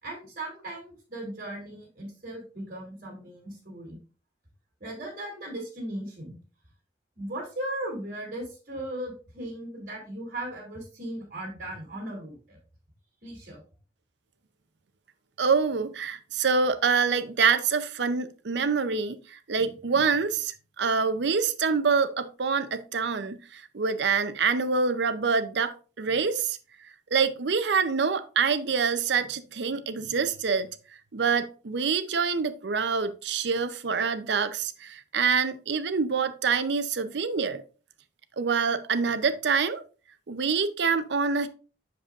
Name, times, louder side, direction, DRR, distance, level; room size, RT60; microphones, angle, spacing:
voice 1, 0.0-4.0 4.8-6.4 7.2-12.6 13.2-13.6, right 1 dB, 45° right, 2.9 m, -37 dB
voice 2, 15.4-26.6 27.1-30.7 31.1-37.6 38.4-39.8 40.3-41.5, right 5 dB, 70° right, 0.6 m, -26 dB
7.6 x 6.8 x 2.5 m
head